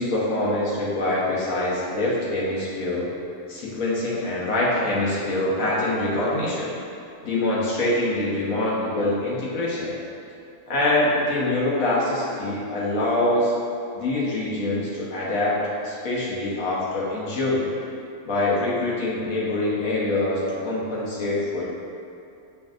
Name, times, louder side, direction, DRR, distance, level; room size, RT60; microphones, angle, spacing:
voice 1, 0.0-3.1 3.5-6.7 7.2-9.9 10.7-13.5 13.9-15.5 15.8-17.7 18.2-21.6, left 2 dB, 80° left, -6 dB, 1.3 m, -24 dB
5.7 x 2.6 x 2.4 m, 2.6 s
omnidirectional pair, 1.4 m